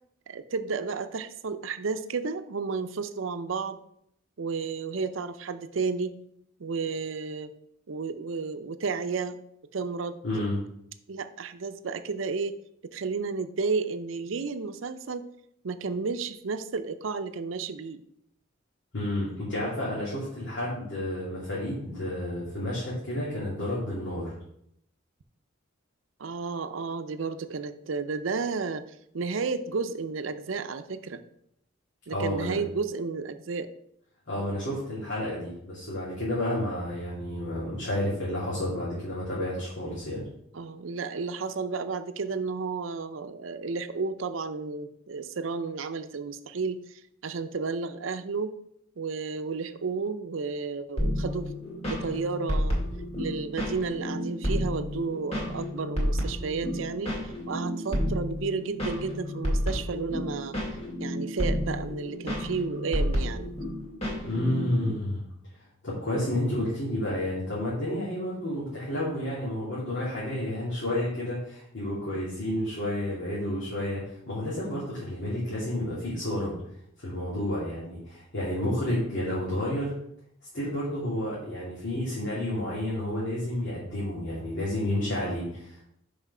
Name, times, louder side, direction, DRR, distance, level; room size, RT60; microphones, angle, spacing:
voice 1, 0.3-3.8 4.4-6.2 6.6-7.5 7.9-9.4 9.7-10.5 11.1-12.6 12.8-15.3 15.6-18.0 26.2-28.9 29.1-31.2 32.1-33.7 40.5-48.5 49.0-51.5 51.8-52.8 53.2-60.6 61.0-63.5, right 4 dB, 80° right, 10 dB, 0.6 m, -32 dB
voice 2, 10.2-10.6 18.9-24.3 32.1-32.6 34.3-40.2 64.3-65.2 65.8-76.5 77.0-79.9 80.5-85.8, left 1 dB, 65° left, -9 dB, 2.6 m, -30 dB
sound 1, 51.0-64.9, equal, 35° left, 2.2 m, -31 dB
6.1 x 5.1 x 5.4 m, 0.74 s
head